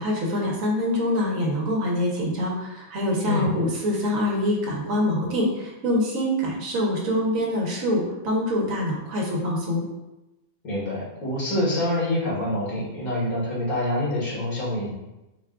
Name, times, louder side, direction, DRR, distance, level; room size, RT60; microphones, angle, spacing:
voice 1, 0.0-9.8, left 1 dB, 70° right, -2 dB, 1.3 m, -25 dB
voice 2, 10.6-14.9, left 1 dB, 85° left, -6 dB, 1.9 m, -26 dB
4.3 x 2.3 x 3.6 m, 0.97 s
omnidirectional pair, 1.5 m